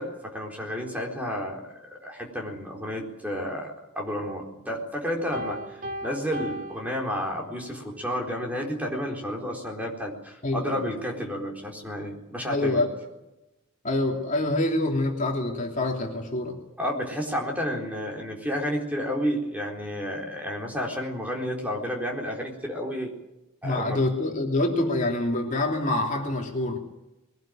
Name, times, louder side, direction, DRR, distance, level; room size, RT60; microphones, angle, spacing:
voice 1, 0.0-12.8 16.8-23.1 23.6-24.0, equal, 5° right, 0 dB, 4.1 m, -31 dB
Piano, 5.3-7.7, equal, 35° right, 4.4 m, -37 dB
voice 2, 10.4-10.9 12.5-12.9 13.8-16.6 23.6-26.8, left 2 dB, 35° left, 1 dB, 3.0 m, -26 dB
22.5 x 18.5 x 9.0 m, 0.95 s
head